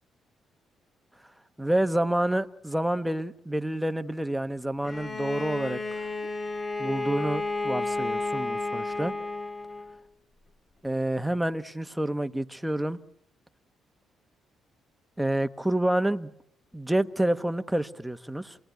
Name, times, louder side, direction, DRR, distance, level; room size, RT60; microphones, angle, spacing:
voice 1, 1.6-6.1 6.8-9.1 10.8-13.0 15.2-16.3 16.7-18.6, right 1 dB, 5° right, 1.0 m, -28 dB
Bowed string instrument, 4.8-10.0, left 3 dB, 35° left, 2.0 m, -32 dB
28.0 x 18.5 x 9.2 m
cardioid pair, 90°, 0 cm